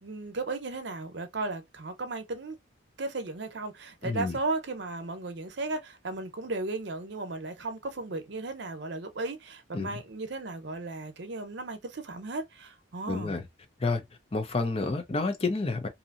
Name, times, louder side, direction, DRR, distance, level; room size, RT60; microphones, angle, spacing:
voice 1, 0.0-2.6 3.0-13.4, right 3 dB, 60° right, 0.7 m, -35 dB
voice 2, 4.0-4.4 9.7-10.0 13.1-13.5 13.8-14.0 14.3-15.9, left 3 dB, 30° left, 0.5 m, -29 dB
2.7 x 2.6 x 2.4 m
head